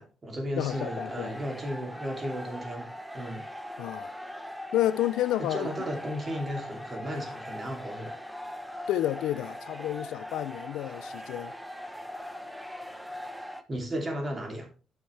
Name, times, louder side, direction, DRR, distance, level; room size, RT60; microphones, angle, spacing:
voice 1, 0.0-3.5 5.4-8.2 13.7-14.7, equal, 30° right, 2.8 m, -35 dB
voice 2, 0.6-1.4 3.8-4.1 4.7-5.7 8.9-11.5, left 13 dB, 90° left, 0.4 m, -30 dB
sound 1, 0.7-13.6, left 1 dB, 5° right, 0.8 m, -41 dB
9.5 x 6.3 x 3.3 m
cardioid pair, 90°, 0 cm